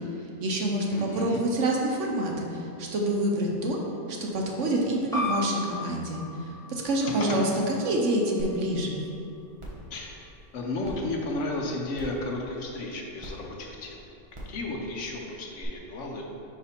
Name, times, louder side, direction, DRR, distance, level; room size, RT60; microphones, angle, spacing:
voice 1, 0.2-3.8 4.1-7.5 7.8-9.0, right 1 dB, 65° right, 0 dB, 1.1 m, -27 dB
voice 2, 0.9-1.4 7.0-7.4 9.9-14.0 14.5-16.2, left 2 dB, 70° left, 0 dB, 1.1 m, -33 dB
sound 1, 5.1-10.3, left 1 dB, 5° left, 1.1 m, -37 dB
sound 2, 8.4-8.5 8.9-9.0 9.6-9.8 10.8-10.9 11.9-12.2 13.2-13.3 14.3-14.6 15.6-15.7, right 1 dB, 25° right, 1.1 m, -40 dB
5.2 x 4.7 x 4.3 m, 2.6 s
omnidirectional pair, 1.4 m